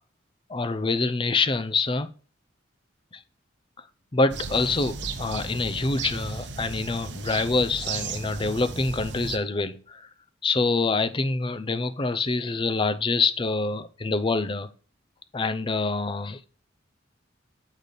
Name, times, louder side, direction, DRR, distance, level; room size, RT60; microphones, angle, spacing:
voice 1, 0.5-2.1 4.1-10.1 10.4-14.7 15.3-16.5, left 3 dB, 25° left, 0.5 m, -26 dB
sound 1, 4.3-9.4, right 5 dB, 65° right, 0.8 m, -35 dB
8.2 x 5.0 x 4.0 m
head